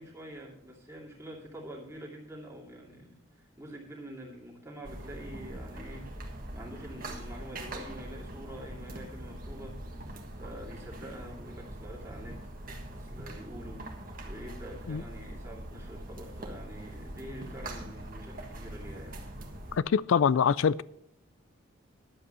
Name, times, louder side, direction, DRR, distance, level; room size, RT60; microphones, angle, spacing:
voice 1, 0.0-9.8 10.4-12.5 12.9-13.9 14.2-19.3, equal, 15° right, 2.5 m, -46 dB
sound 1, 4.8-19.8, right 1 dB, 45° right, 1.5 m, -42 dB
voice 2, 19.9-20.8, left 7 dB, 70° left, 0.4 m, -24 dB
11.0 x 8.0 x 5.6 m
head